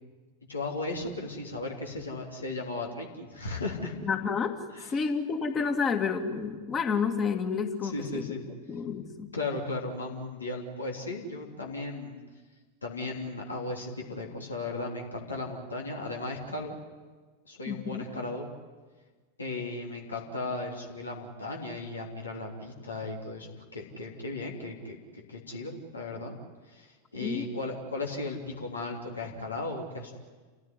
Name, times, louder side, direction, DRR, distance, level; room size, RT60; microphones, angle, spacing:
voice 1, 0.5-3.9 4.7-5.0 7.8-8.4 9.3-12.2 12.8-16.8 17.4-18.5 19.4-25.0 25.3-26.3 26.7-30.1, left 2 dB, 75° left, 0 dB, 3.4 m, -36 dB
voice 2, 4.0-4.6 4.9-8.3 8.7-9.3 17.7-18.0 27.2-27.4, left 5 dB, 25° left, 6 dB, 2.4 m, -30 dB
29.0 x 16.0 x 9.9 m, 1.4 s
figure-of-eight pair, 90°, 0 cm